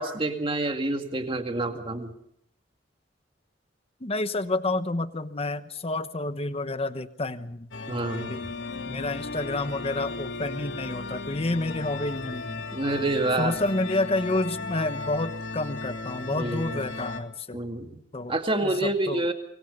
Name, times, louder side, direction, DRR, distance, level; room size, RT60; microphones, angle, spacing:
voice 1, 0.0-2.1 7.9-8.3 12.7-13.5 16.3-16.8 17.5-18.0 18.3-19.3, right 2 dB, 30° right, 5 dB, 2.2 m, -28 dB
voice 2, 4.0-7.7 8.0-8.4 8.9-12.6 13.4-17.6 18.1-18.3 18.6-19.2, left 2 dB, 35° left, 12 dB, 1.0 m, -29 dB
sound 1, 7.7-17.2, left 3 dB, 80° left, 2.4 m, -36 dB
25.0 x 22.5 x 5.4 m, 0.70 s
head